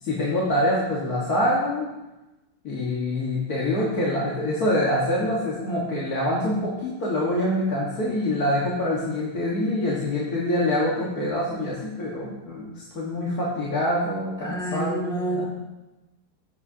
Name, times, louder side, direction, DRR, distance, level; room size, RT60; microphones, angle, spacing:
voice 1, 0.0-1.9 2.6-15.0 15.3-15.5, left 1 dB, 60° left, -6 dB, 2.1 m, -25 dB
voice 2, 14.4-15.5, right 2 dB, 5° left, -3 dB, 1.7 m, -28 dB
14.5 x 8.5 x 2.8 m, 1.0 s
omnidirectional pair, 1.8 m